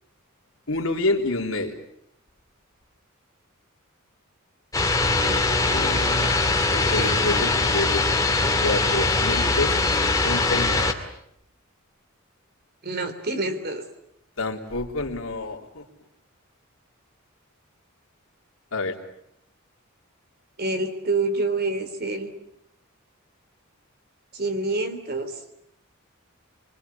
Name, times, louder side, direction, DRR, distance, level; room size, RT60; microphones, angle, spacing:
voice 1, 0.7-1.8 5.7-6.3 6.9-8.0 8.6-10.9 14.4-15.8 18.7-18.9, left 2 dB, 70° left, 2 dB, 3.7 m, -28 dB
sound 1, 4.7-10.9, left 3 dB, 15° left, 2.6 m, -22 dB
voice 2, 5.2-7.2 12.8-13.8 20.6-22.3 24.3-25.4, right 2 dB, 50° right, 9 dB, 3.3 m, -28 dB
25.5 x 24.5 x 8.5 m, 0.76 s
head